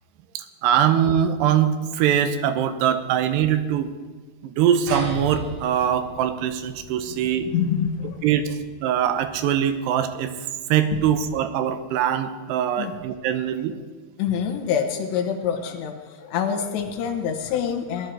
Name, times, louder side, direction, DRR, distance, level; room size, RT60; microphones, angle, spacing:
voice 1, 0.4-3.9 4.4-7.5 8.2-8.4 8.8-10.3 10.7-13.8, right 9 dB, 90° right, 9 dB, 2.9 m, -22 dB
sound 1, 4.9-9.7, equal, 70° right, 5.2 m, -38 dB
voice 2, 7.4-8.3 10.9-11.0 12.8-12.9 14.2-18.1, left 8 dB, 85° left, 3 dB, 3.4 m, -26 dB
18.5 x 11.5 x 4.6 m, 1.4 s
omnidirectional pair, 4.9 m